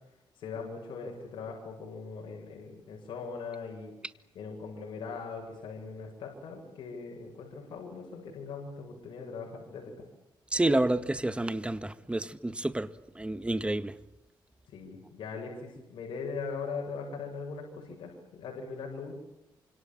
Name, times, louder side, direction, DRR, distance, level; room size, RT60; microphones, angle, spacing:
voice 1, 0.3-3.9 4.3-9.9 14.7-19.1, left 4 dB, 80° left, 7.7 m, -40 dB
voice 2, 10.5-12.9 13.2-13.9, right 1 dB, 15° right, 1.8 m, -29 dB
28.0 x 26.5 x 7.6 m
cardioid pair, 80°, 8 cm